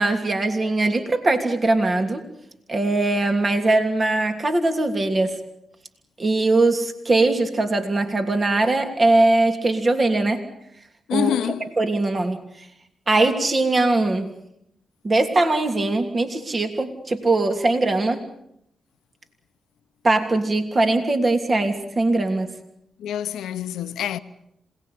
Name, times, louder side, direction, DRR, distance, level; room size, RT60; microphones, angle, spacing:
voice 1, 0.0-2.2 2.7-5.4 6.2-10.4 11.1-11.3 11.8-12.4 13.1-14.3 15.0-18.2 20.0-22.5, right 2 dB, 40° right, 3.1 m, -21 dB
voice 2, 11.1-11.7 23.0-24.2, left 10 dB, 90° left, 0.9 m, -26 dB
27.0 x 19.0 x 8.5 m
supercardioid pair, 55°, 0 cm